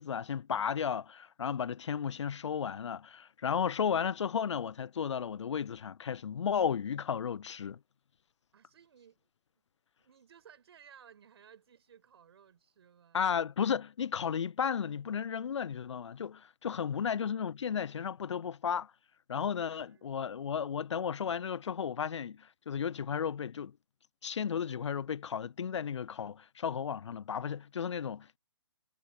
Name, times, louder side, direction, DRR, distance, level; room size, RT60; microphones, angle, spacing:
voice 1, 0.0-7.8 13.1-18.9 19.3-23.8 24.2-28.4, left 7 dB, 85° left, 0.4 m, -34 dB
voice 2, 8.5-9.6 10.0-13.3 16.7-17.2 19.6-20.6, right 8 dB, 60° right, 5.8 m, -60 dB
hypercardioid pair, 140°, 15 cm